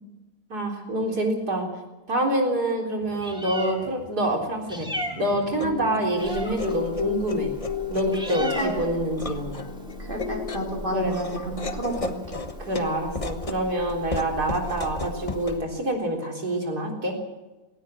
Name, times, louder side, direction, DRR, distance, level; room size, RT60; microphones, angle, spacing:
voice 1, 0.5-1.7 2.1-7.5 7.9-9.6 10.9-11.2 12.6-17.1, right 1 dB, 75° right, 2 dB, 4.4 m, -27 dB
Meow, 3.0-15.6, equal, 5° right, 3.0 m, -38 dB
sound 1, 4.7-15.6, left 5 dB, 25° left, 1.1 m, -33 dB
voice 2, 8.4-8.7 10.1-12.1, right 1 dB, 30° right, -1 dB, 4.6 m, -30 dB
18.5 x 18.0 x 7.9 m, 1.1 s
omnidirectional pair, 1.7 m